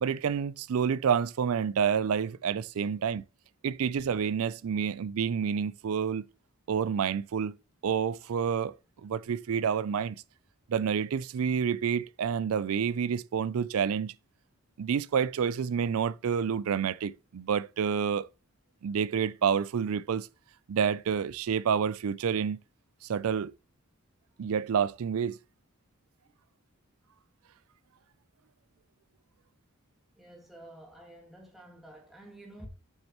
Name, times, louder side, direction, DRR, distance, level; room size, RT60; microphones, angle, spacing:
voice 1, 0.0-3.2 3.6-6.2 6.7-7.5 7.8-8.7 9.0-10.2 10.7-14.1 14.8-18.2 18.8-20.3 20.7-22.6 23.1-23.5 24.4-25.4, right 7 dB, 75° right, 0.4 m, -28 dB
voice 2, 30.2-32.7, right 1 dB, ahead, 1.8 m, -50 dB
7.3 x 6.5 x 3.0 m
head